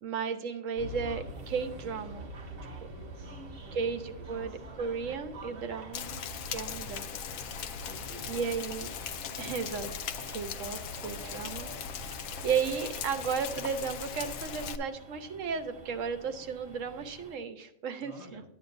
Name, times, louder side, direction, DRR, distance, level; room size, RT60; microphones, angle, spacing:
voice 1, 0.0-2.3 3.7-6.2 6.5-7.1 8.3-8.9 9.4-9.9 10.3-11.7 12.4-18.4, right 6 dB, 75° right, 8 dB, 1.2 m, -34 dB
sound 1, 0.8-17.4, right 2 dB, 50° right, 1.2 m, -47 dB
voice 2, 2.9-3.9 4.4-4.5 5.8-6.2 7.8-8.5 9.2-9.5 18.0-18.4, left 2 dB, 55° left, -1 dB, 2.4 m, -51 dB
Rain, 5.9-14.8, left 7 dB, 85° left, 1.0 m, -39 dB
10.5 x 8.6 x 2.6 m, 0.79 s
omnidirectional pair, 1.3 m